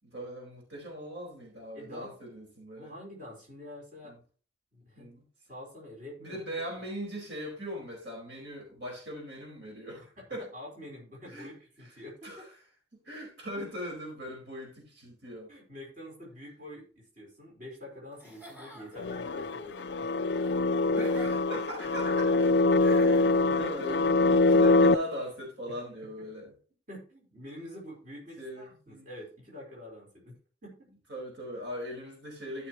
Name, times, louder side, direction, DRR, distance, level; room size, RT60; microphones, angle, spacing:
voice 1, 0.0-2.9 4.0-4.2 5.0-5.2 6.2-10.5 11.3-11.5 11.8-11.9 12.2-12.5 12.9-15.5 20.9-26.5 28.4-29.1 31.1-32.7, equal, 70° right, -1 dB, 4.8 m, -40 dB
voice 2, 1.7-2.2 2.8-4.2 4.7-5.1 5.5-6.7 10.2-10.3 10.5-12.5 15.5-20.1 22.3-22.4 26.2-26.3 26.9-30.9, left 1 dB, 45° right, -3 dB, 4.6 m, -47 dB
Giggle / Chuckle chortle, 18.1-23.6, equal, 10° right, 4.0 m, -52 dB
sound 1, 19.0-24.9, left 3 dB, 65° left, 0.5 m, -24 dB
14.5 x 6.5 x 3.0 m, 0.38 s
head